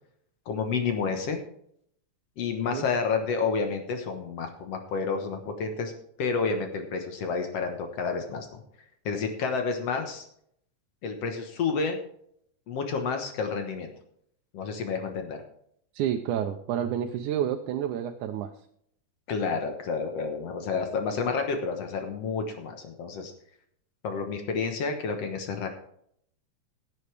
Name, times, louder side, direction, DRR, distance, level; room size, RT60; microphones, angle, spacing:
voice 1, 0.5-1.4 2.4-5.9 6.2-8.6 9.1-10.2 11.0-12.0 12.7-13.9 14.5-15.4 19.3-23.3 24.0-25.7, left 5 dB, 65° left, 5 dB, 2.1 m, -30 dB
voice 2, 15.9-18.5, right 10 dB, 85° right, 5 dB, 2.1 m, -29 dB
16.5 x 7.9 x 3.4 m, 0.68 s
omnidirectional pair, 3.4 m